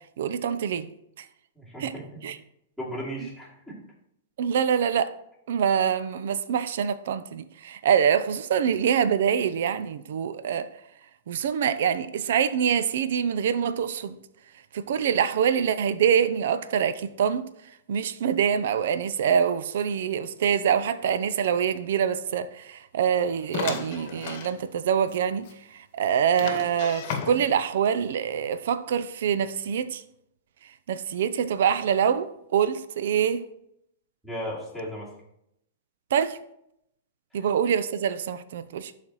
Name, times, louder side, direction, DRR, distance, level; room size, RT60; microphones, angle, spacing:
voice 1, 0.2-0.9 1.2-1.3 1.8-1.9 2.2-2.4 4.4-5.1 5.5-10.7 11.3-14.2 14.7-17.4 17.9-25.5 25.7-30.0 30.9-33.4 36.1-36.4 37.3-38.9, right 8 dB, 70° right, 0.4 m, -25 dB
voice 2, 1.6-2.2 2.8-3.8 34.2-35.1 37.3-37.5, equal, 5° right, 2.6 m, -36 dB
sound 1, 23.5-24.5 25.1-25.2 25.5-25.6 26.4-27.6, left 6 dB, 50° left, 1.1 m, -34 dB
11.5 x 4.1 x 3.1 m
hypercardioid pair, 140°, 0 cm